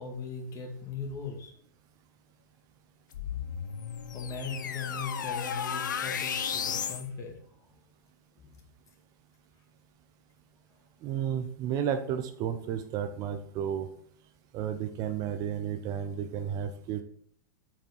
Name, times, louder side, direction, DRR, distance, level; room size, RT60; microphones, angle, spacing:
voice 1, 0.0-1.5 4.1-7.4 8.4-8.6, left 5 dB, 30° left, 3 dB, 1.9 m, -39 dB
sound 1, 3.1-7.1, left 7 dB, 75° left, 0.7 m, -34 dB
voice 2, 11.0-13.9 14.5-17.0, right 9 dB, 40° right, 8 dB, 0.7 m, -32 dB
7.5 x 5.0 x 4.5 m, 0.63 s
hypercardioid pair, 100°, 10 cm